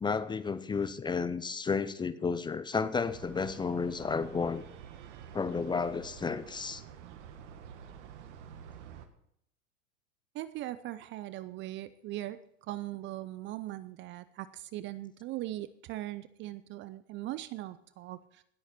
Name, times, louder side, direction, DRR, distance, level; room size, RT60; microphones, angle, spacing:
voice 1, 0.0-4.6 5.3-6.8, left 5 dB, 10° left, 14 dB, 0.6 m, -32 dB
sound 1, 3.0-9.1, right 8 dB, 65° right, 1.7 m, -49 dB
voice 2, 10.3-18.4, right 15 dB, 30° right, 16 dB, 0.5 m, -40 dB
18.5 x 8.1 x 4.4 m, 0.73 s
hypercardioid pair, 105°, 38 cm